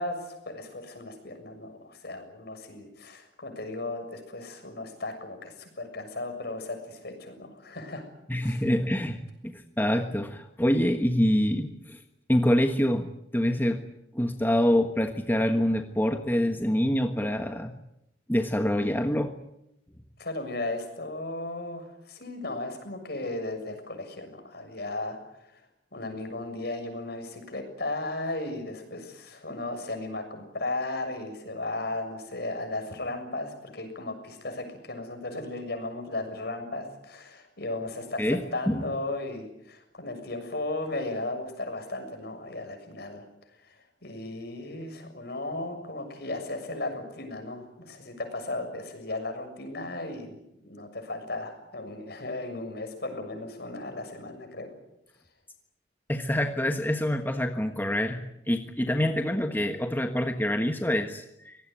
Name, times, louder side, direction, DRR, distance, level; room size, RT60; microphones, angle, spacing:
voice 1, 0.0-8.0 8.4-8.6 20.2-25.2 25.4-25.6 25.9-43.3 43.6-54.7, left 2 dB, 65° left, 6 dB, 6.9 m, -35 dB
voice 2, 8.3-12.0 12.3-13.8 14.1-17.7 18.3-19.3 38.2-38.4 38.7-38.8 56.1-61.6, equal, 10° left, 5 dB, 1.4 m, -26 dB
24.5 x 19.0 x 9.3 m, 0.83 s
head